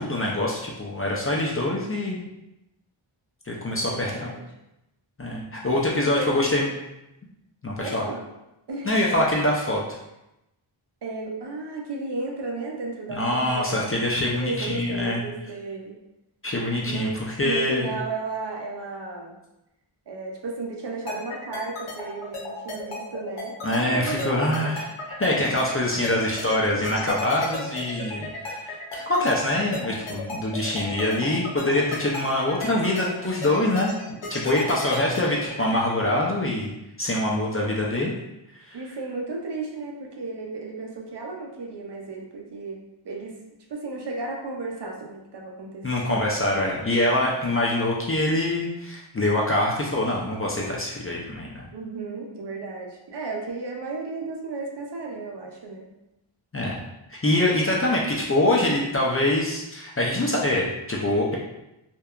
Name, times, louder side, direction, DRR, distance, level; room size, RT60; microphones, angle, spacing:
voice 1, 0.0-2.2 3.5-4.3 5.2-6.7 7.6-8.0 8.8-9.8 13.1-15.2 16.4-17.9 23.6-24.8 25.2-28.7 29.1-36.7 37.0-38.1 38.7-38.8 45.8-51.7 56.5-56.8 57.1-61.4, left 1 dB, 30° left, -3 dB, 0.4 m, -24 dB
voice 2, 3.7-4.4 5.6-6.6 7.8-8.3 8.7-8.9 11.0-14.0 14.3-16.0 16.8-17.1 17.4-19.3 20.1-24.8 25.5-25.6 38.7-43.4 43.7-46.2 51.7-55.9, right 3 dB, 55° right, -1 dB, 0.6 m, -34 dB
sound 1, 21.1-35.8, left 3 dB, 85° left, 0.7 m, -34 dB
2.7 x 2.2 x 2.3 m, 0.91 s
wide cardioid pair, 70°, 50 cm